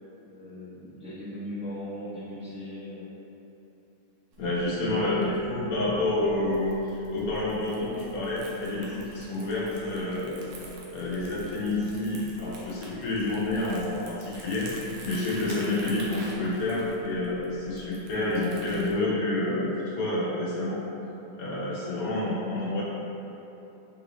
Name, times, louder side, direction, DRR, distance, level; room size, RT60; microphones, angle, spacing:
voice 1, 0.2-3.1, left 1 dB, 10° right, -12 dB, 0.4 m, -38 dB
Crumpling crinkling, 4.3-18.9, right 2 dB, 70° right, 1.2 m, -47 dB
voice 2, 4.4-10.4 10.9-14.7 15.0-20.8 21.4-22.8, left 2 dB, 55° left, -7 dB, 1.1 m, -28 dB
5.6 x 2.6 x 3.0 m, 2.9 s
omnidirectional pair, 2.2 m